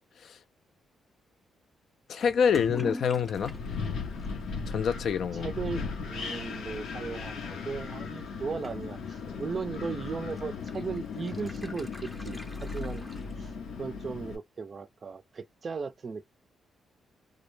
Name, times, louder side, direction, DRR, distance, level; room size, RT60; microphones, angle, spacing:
voice 1, 2.1-3.5 4.7-5.5, left 7 dB, 65° left, 0.4 m, -26 dB
Toilet flush / Liquid, 2.2-13.8, left 1 dB, 15° left, 0.6 m, -46 dB
Wind, 3.4-14.4, left 5 dB, 85° left, 0.7 m, -37 dB
voice 2, 5.3-13.0 13.4-13.5 13.8-16.3, right 5 dB, 40° right, 0.4 m, -37 dB
2.2 x 2.1 x 3.1 m
cardioid pair, 95°, 0 cm